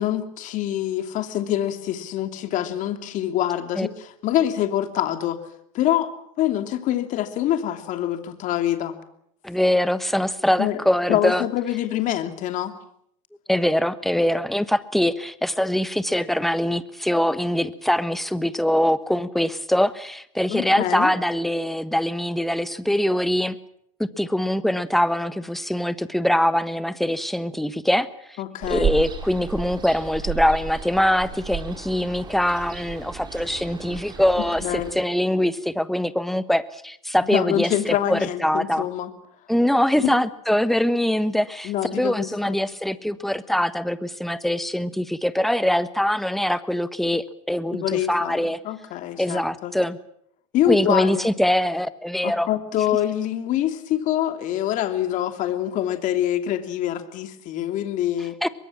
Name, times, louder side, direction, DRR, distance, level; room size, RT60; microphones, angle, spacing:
voice 1, 0.0-5.4 5.7-6.1 6.4-9.0 10.6-10.8 11.1-12.7 20.5-21.1 28.4-28.9 34.6-35.0 37.3-39.1 40.0-40.1 41.6-42.7 47.7-49.8 50.5-51.3 52.2-58.3, left 12 dB, 45° left, 7 dB, 2.8 m, -25 dB
voice 2, 9.4-11.4 13.5-23.6 24.2-28.1 28.7-38.9 39.5-48.6 49.2-50.0 50.7-52.5 58.4-58.5, left 1 dB, ahead, 13 dB, 1.3 m, -23 dB
Ocean, 28.6-34.9, right 6 dB, 25° right, 5.1 m, -32 dB
23.0 x 22.5 x 7.5 m, 0.72 s
supercardioid pair, 115°, 18 cm